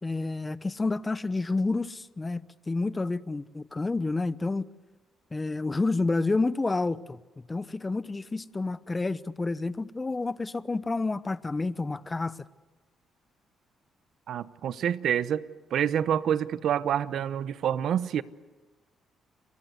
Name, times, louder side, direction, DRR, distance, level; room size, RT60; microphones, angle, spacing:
voice 1, 0.0-4.7 5.3-7.2 7.5-12.4, left 3 dB, 20° left, 0.9 m, -29 dB
voice 2, 14.3-15.4 15.7-18.2, right 9 dB, 70° right, 0.9 m, -27 dB
30.0 x 22.0 x 8.0 m
cardioid pair, 90°, 0 cm